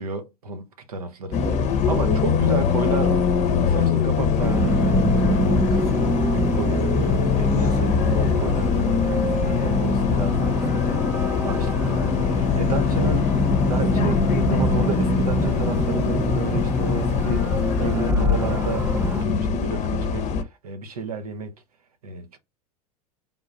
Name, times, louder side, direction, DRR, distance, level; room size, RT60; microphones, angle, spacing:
voice 1, 0.0-3.3 3.6-11.1 11.4-17.5 17.8-20.3 20.6-21.5 22.0-22.4, right 4 dB, 85° right, 0.8 m, -32 dB
Bus, 1.3-20.4, left 6 dB, 40° left, 0.7 m, -22 dB
sound 1, 4.4-19.2, right 4 dB, 15° right, 0.4 m, -27 dB
3.8 x 2.4 x 4.0 m
hypercardioid pair, 85°, 19 cm